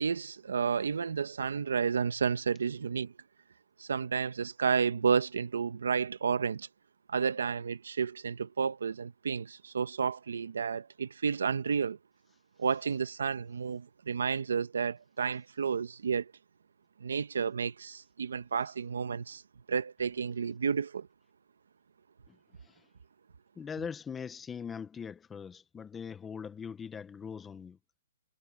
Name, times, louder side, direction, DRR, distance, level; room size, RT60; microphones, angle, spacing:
voice 1, 0.0-3.1 3.8-6.7 7.1-12.0 12.6-16.3 17.0-19.4 19.7-21.1, right 6 dB, 90° right, 1.1 m, -31 dB
voice 2, 23.6-27.8, left 6 dB, 10° left, 1.0 m, -41 dB
hypercardioid pair, 155°, 0 cm